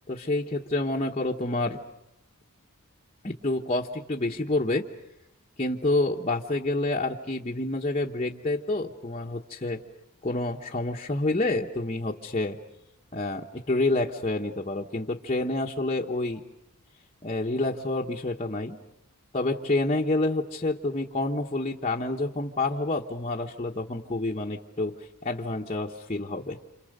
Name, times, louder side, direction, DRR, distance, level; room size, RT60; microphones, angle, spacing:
voice 1, 0.1-1.8 3.2-4.9 5.6-9.8 10.2-12.6 13.1-16.4 17.2-18.8 19.3-24.9 25.2-26.6, left 2 dB, 30° left, -1 dB, 1.1 m, -28 dB
28.5 x 27.5 x 6.7 m, 0.85 s
head